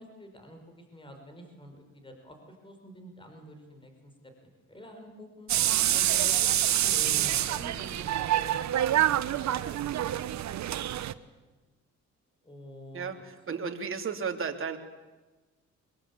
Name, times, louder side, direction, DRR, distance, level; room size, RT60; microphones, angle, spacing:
voice 1, 0.0-6.4 6.9-8.1 11.1-11.2 12.4-13.2, equal, 15° left, 4 dB, 5.3 m, -48 dB
sound 1, 5.5-11.1, right 12 dB, 65° right, 1.0 m, -26 dB
voice 2, 12.9-14.8, right 6 dB, 45° right, 4 dB, 3.1 m, -34 dB
24.0 x 22.0 x 8.6 m, 1.2 s
cardioid pair, 90°, 30 cm